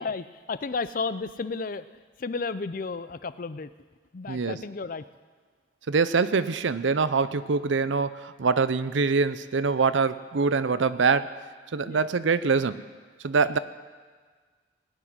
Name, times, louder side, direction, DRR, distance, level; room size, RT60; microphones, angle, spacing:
voice 1, 0.0-1.9 2.2-3.7 4.1-5.0 11.8-12.1 13.5-13.6, left 4 dB, 45° left, 14 dB, 0.5 m, -32 dB
voice 2, 5.9-11.3 11.7-12.8 13.2-13.6, right 4 dB, 75° right, 14 dB, 0.6 m, -24 dB
18.5 x 6.2 x 9.5 m, 1.5 s
head